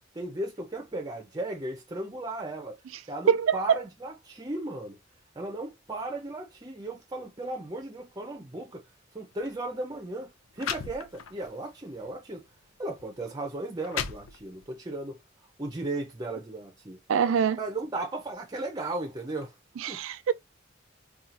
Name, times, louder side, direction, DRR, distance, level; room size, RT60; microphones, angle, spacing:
voice 1, 0.1-2.8 3.1-5.0 5.4-8.8 9.1-12.4 12.8-15.2 15.6-17.0 17.6-19.5 19.9-20.0, right 2 dB, 20° right, 0.7 m, -36 dB
sound 1, 9.3-9.5 10.2-10.3 10.6-11.5 12.0-12.2 13.0-13.1 13.6-14.7, left 7 dB, 85° left, 0.5 m, -36 dB
voice 2, 17.1-17.6 19.8-20.3, right 7 dB, 75° right, 0.4 m, -24 dB
4.2 x 2.4 x 2.5 m
head